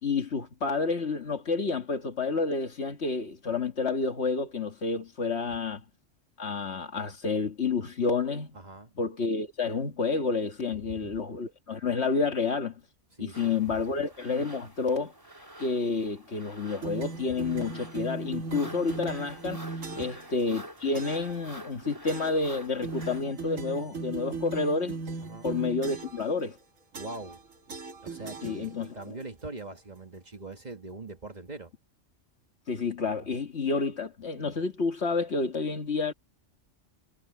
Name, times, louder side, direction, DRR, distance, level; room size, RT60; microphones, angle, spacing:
voice 1, 0.0-5.8 6.4-8.6 9.0-12.8 13.2-15.1 15.6-19.6 20.0-25.0 25.4-26.6 28.4-29.1 32.7-36.1, left 4 dB, 60° left, 1.9 m, -29 dB
voice 2, 8.5-8.9 10.8-11.2 13.2-13.8 17.3-17.5 19.9-20.1 25.2-25.5 26.9-27.4 28.0-31.7, right 2 dB, 35° right, 1.5 m, -42 dB
sound 1, 13.3-23.2, right 1 dB, 15° right, 3.5 m, -47 dB
sound 2, 16.8-20.3 20.9-21.4 22.1-22.5 22.8-26.3 26.9-27.4 27.7-29.0, right 4 dB, 85° right, 2.1 m, -38 dB
omnidirectional pair, 1.3 m